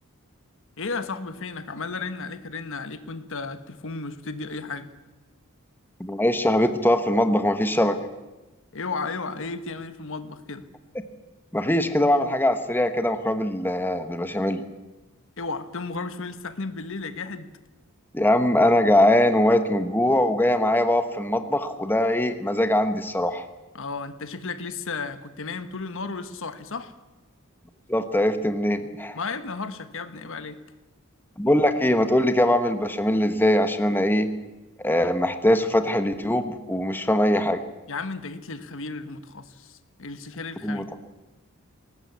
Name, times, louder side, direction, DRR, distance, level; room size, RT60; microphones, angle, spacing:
voice 1, 0.8-4.9 8.7-10.6 15.4-17.5 23.7-26.9 29.1-30.6 37.9-41.0, left 4 dB, 60° left, 11 dB, 1.2 m, -34 dB
voice 2, 6.0-8.0 11.5-14.6 18.1-23.4 27.9-29.2 31.4-34.3 34.8-37.6 40.6-40.8, left 1 dB, 10° left, 8 dB, 1.2 m, -22 dB
21.0 x 18.5 x 8.3 m, 1.1 s
head